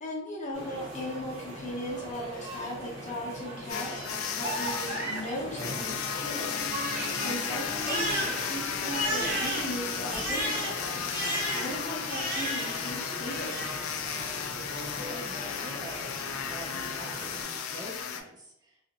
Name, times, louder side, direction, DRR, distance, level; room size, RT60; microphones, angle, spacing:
voice 1, 0.0-14.1, equal, 35° left, -3 dB, 0.7 m, -38 dB
sound 1, 0.5-17.4, right 1 dB, 65° right, 1.1 m, -40 dB
sound 2, 3.7-18.2, left 7 dB, 85° left, 0.3 m, -35 dB
Crying sobbing, 6.1-12.9 13.2-13.9, equal, 45° right, 0.7 m, -34 dB
voice 2, 14.9-18.8, right 1 dB, 20° right, -2 dB, 0.4 m, -46 dB
2.4 x 2.0 x 2.8 m, 0.76 s
head